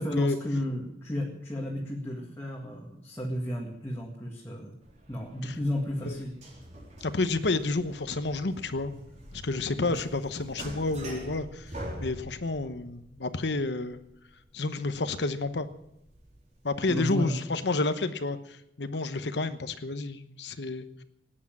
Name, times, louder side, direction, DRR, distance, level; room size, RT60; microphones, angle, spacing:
voice 1, 0.0-4.8 5.1-6.3 9.8-10.0 16.9-17.4, left 1 dB, 15° left, -3 dB, 1.9 m, -33 dB
sound 1, 4.8-17.0, right 1 dB, 45° right, 3.8 m, -45 dB
voice 2, 7.0-8.9 9.3-11.7 12.0-14.0 14.5-15.7 16.6-21.0, left 3 dB, 75° left, 10 dB, 1.0 m, -30 dB
17.0 x 10.0 x 7.5 m, 0.83 s
head